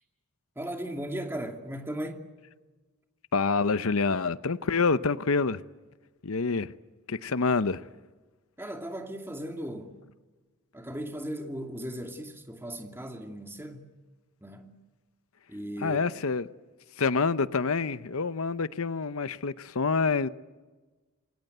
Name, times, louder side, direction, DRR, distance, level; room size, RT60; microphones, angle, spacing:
voice 1, 0.6-2.3 8.6-9.9 10.7-13.9 14.4-14.7 15.5-16.0, right 1 dB, 10° right, 2.6 m, -37 dB
voice 2, 3.3-5.6 6.2-6.7 7.1-7.8 15.8-16.5 17.0-20.3, left 4 dB, 75° left, 0.8 m, -27 dB
27.0 x 23.0 x 8.0 m
head